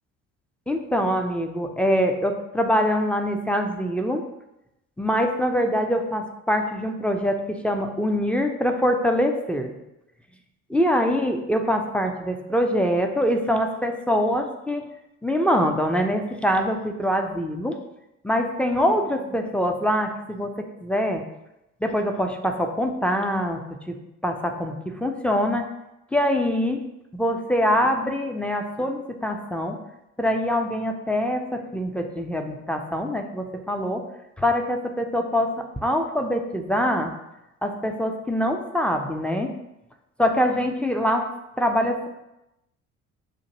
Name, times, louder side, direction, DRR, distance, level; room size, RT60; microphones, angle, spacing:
voice 1, 0.7-4.2 5.0-9.7 10.7-14.8 15.2-17.8 18.2-21.2 21.8-23.6 23.9-24.0 24.2-25.6 26.1-26.8 27.1-29.8 30.2-34.0 34.4-37.1 37.6-39.5 40.2-41.3 41.6-42.1, equal, 5° left, 4 dB, 0.3 m, -24 dB
7.0 x 2.5 x 2.8 m, 0.92 s
figure-of-eight pair, 50°, 42 cm